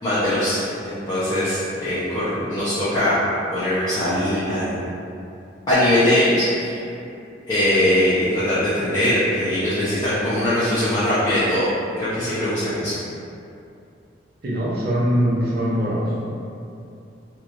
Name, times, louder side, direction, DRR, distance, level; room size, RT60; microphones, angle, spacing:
voice 1, 0.0-3.2 3.5-4.8 5.7-6.8 7.5-11.7 12.0-12.9, left 1 dB, 20° left, -13 dB, 0.5 m, -21 dB
voice 2, 14.4-16.0 16.3-16.4, equal, 50° right, -6 dB, 0.6 m, -22 dB
3.0 x 2.3 x 2.5 m, 2.6 s
head